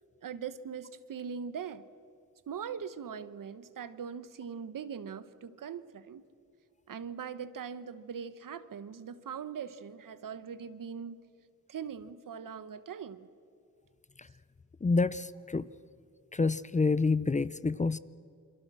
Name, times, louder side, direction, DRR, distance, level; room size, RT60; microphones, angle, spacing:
voice 1, 0.2-1.9 2.5-6.3 6.9-11.2 11.7-13.3, right 7 dB, 75° right, 14 dB, 1.1 m, -41 dB
voice 2, 14.8-15.7 16.3-18.0, left 3 dB, 20° left, 17 dB, 0.6 m, -28 dB
28.0 x 23.0 x 6.3 m, 2.4 s
cardioid pair, 85°, 33 cm